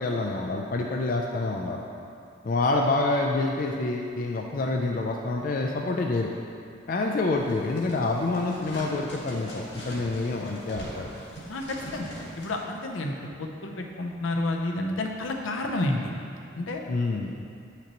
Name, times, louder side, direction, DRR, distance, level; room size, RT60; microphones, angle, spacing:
voice 1, 0.0-1.9 2.4-6.4 6.9-11.1 16.9-17.4, left 2 dB, 45° left, 1 dB, 0.4 m, -27 dB
sound 1, 7.3-12.6, equal, 60° left, 1.5 m, -42 dB
voice 2, 11.5-12.1 12.4-16.1 16.6-16.8, left 2 dB, 80° left, 1 dB, 0.7 m, -30 dB
8.1 x 5.8 x 3.0 m, 2.4 s
head